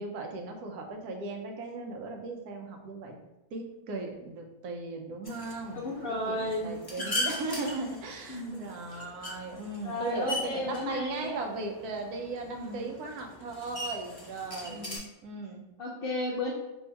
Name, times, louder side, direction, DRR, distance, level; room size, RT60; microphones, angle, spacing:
voice 1, 0.0-3.2 3.5-5.8 6.3-14.9 15.2-15.6, right 3 dB, 90° right, 3 dB, 1.1 m, -37 dB
sound 1, 5.2-15.0, left 1 dB, 20° left, 0.7 m, -40 dB
voice 2, 5.7-7.1 8.3-8.7 9.8-11.4 12.5-12.9 14.6-15.0 15.8-16.5, left 1 dB, 70° left, -4 dB, 0.5 m, -34 dB
2.7 x 2.7 x 4.3 m, 0.99 s
omnidirectional pair, 1.6 m